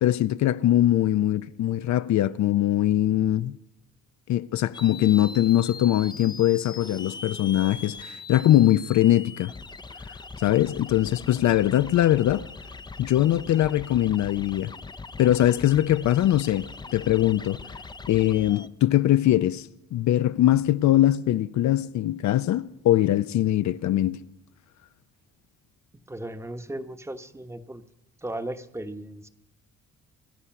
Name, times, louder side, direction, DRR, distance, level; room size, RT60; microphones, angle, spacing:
voice 1, 0.0-3.6 4.3-9.5 10.4-12.5 13.0-14.7 15.2-17.6 18.1-24.2, left 13 dB, 65° left, 0.6 m, -22 dB
sound 1, 4.7-18.7, left 3 dB, 15° left, 0.5 m, -41 dB
voice 2, 26.1-27.8 28.2-29.3, right 1 dB, 10° right, 1.0 m, -36 dB
25.0 x 9.7 x 5.8 m
cardioid pair, 90°, 30 cm